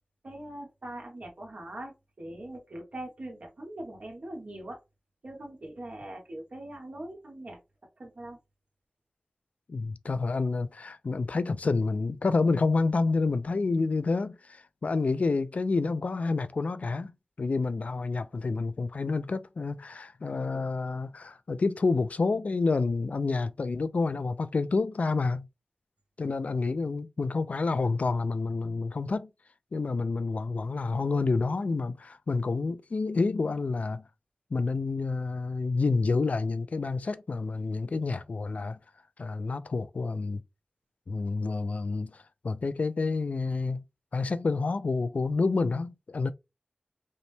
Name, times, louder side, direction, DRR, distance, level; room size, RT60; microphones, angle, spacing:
voice 1, 0.2-4.8 5.2-7.6 8.0-8.4, right 1 dB, 75° right, 1.4 m, -42 dB
voice 2, 9.7-17.1 17.4-25.5 26.2-29.3 29.7-34.0 34.5-38.8 39.2-40.4 41.1-42.1 42.4-43.8 44.1-46.3, left 3 dB, 75° left, 0.4 m, -28 dB
5.2 x 2.2 x 3.3 m
wide cardioid pair, 65°, 2 cm